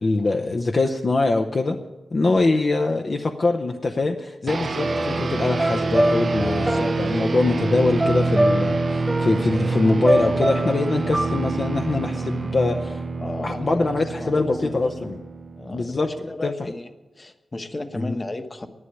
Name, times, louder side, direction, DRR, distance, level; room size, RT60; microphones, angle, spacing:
voice 1, 0.0-1.8 2.1-13.0 13.4-15.2 15.7-16.1 16.4-16.5 17.9-18.1, left 3 dB, 50° left, 4 dB, 0.7 m, -23 dB
sound 1, 4.5-16.2, right 3 dB, 50° right, 0.6 m, -27 dB
sound 2, 4.8-13.0, right 1 dB, 10° right, 0.6 m, -26 dB
voice 2, 6.4-7.2 13.2-14.7 15.5-16.9 17.2-18.7, left 2 dB, 30° left, 8 dB, 1.1 m, -34 dB
11.0 x 9.5 x 9.8 m, 1.1 s
wide cardioid pair, 85°, 0 cm